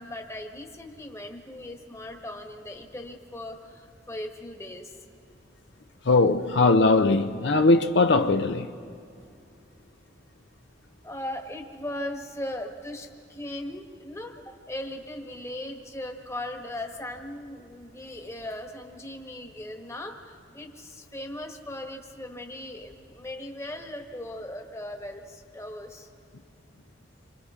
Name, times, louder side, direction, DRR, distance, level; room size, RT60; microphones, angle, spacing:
voice 1, 0.0-5.0 11.0-26.1, left 1 dB, 15° left, 1.3 m, -38 dB
voice 2, 6.1-8.7, left 3 dB, 70° left, 0.6 m, -20 dB
28.0 x 25.5 x 3.7 m
head